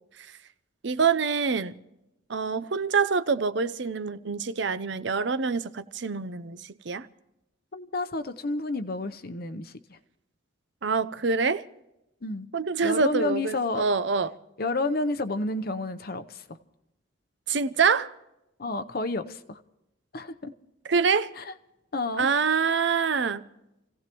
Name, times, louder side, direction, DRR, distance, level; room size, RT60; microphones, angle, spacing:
voice 1, 0.8-1.7 2.3-7.1 10.8-11.6 12.5-14.3 17.5-18.1 20.9-21.3 22.2-23.4, right 5 dB, 65° right, 0.7 m, -25 dB
voice 2, 7.7-10.0 12.2-12.5 12.8-13.8 14.6-16.4 18.6-19.6 20.1-20.5 21.4-21.5 21.9-22.3, left 2 dB, 50° left, 0.8 m, -30 dB
28.5 x 16.5 x 3.0 m
head